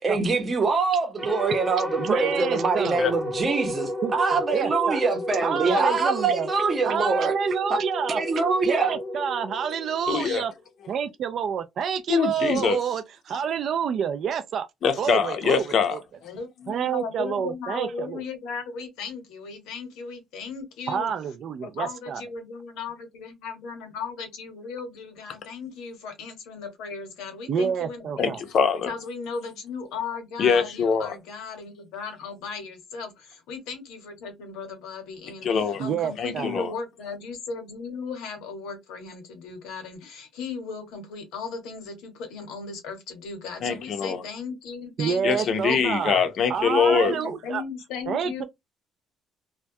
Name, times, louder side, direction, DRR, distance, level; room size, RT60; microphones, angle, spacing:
voice 1, 0.0-7.3 7.7-7.8 8.2-9.0, right 4 dB, 30° right, 0.7 m, -24 dB
sound 1, 1.2-10.5, left 1 dB, 10° right, 1.0 m, -32 dB
voice 2, 2.0-3.1 4.0-5.0 5.4-6.5 6.9-8.2 8.6-10.5 10.9-14.7 15.0-16.0 16.7-18.2 20.9-22.2 27.5-28.4 35.8-36.6 45.0-46.2 46.5-47.6 48.1-48.4, right 7 dB, 55° right, 0.3 m, -28 dB
voice 3, 10.1-10.4 12.1-12.8 14.8-15.9 28.2-28.9 30.4-31.2 35.4-35.8 36.2-36.7 43.6-44.2 45.2-47.2, left 6 dB, 55° left, 0.5 m, -23 dB
voice 4, 16.2-21.1 21.6-28.4 28.8-46.1 46.5-48.4, left 5 dB, 90° left, 0.9 m, -36 dB
2.2 x 2.2 x 2.6 m
cardioid pair, 115°, 0 cm